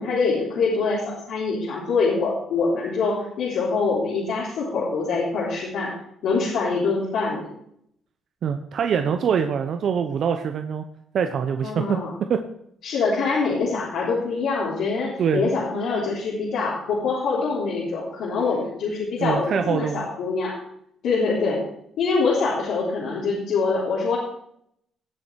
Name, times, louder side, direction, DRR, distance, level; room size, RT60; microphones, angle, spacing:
voice 1, 0.0-5.9 6.2-7.5 11.6-12.1 12.8-20.6 21.0-21.6 22.0-24.2, left 4 dB, 80° left, -7 dB, 3.8 m, -24 dB
voice 2, 8.4-10.8 11.1-11.8 12.3-12.4 15.2-15.5 19.2-20.1, right 7 dB, 65° right, 7 dB, 0.9 m, -24 dB
17.5 x 7.4 x 4.7 m, 0.72 s
cardioid pair, 90°, 0 cm